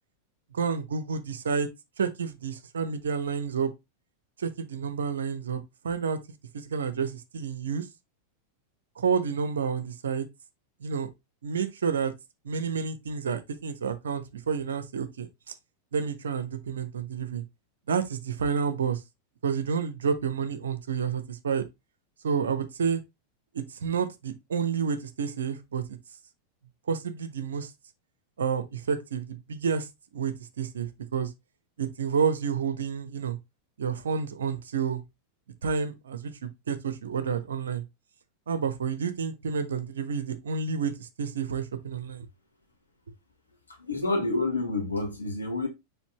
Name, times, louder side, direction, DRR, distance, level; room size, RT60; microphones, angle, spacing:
voice 1, 0.5-1.7 2.0-3.7 4.4-6.2 6.5-7.8 9.0-10.3 10.8-11.1 11.4-12.1 12.4-15.3 15.9-17.4 17.9-19.0 19.4-21.6 22.2-23.0 23.5-25.8 26.9-27.7 28.4-29.9 30.1-31.3 31.8-33.4 33.8-35.0 35.6-37.8 38.5-42.3, right 6 dB, 65° right, 1.0 m, -29 dB
voice 2, 43.7-45.7, left 2 dB, 80° left, 2.7 m, -28 dB
7.2 x 5.1 x 3.0 m
figure-of-eight pair, 90°, 0 cm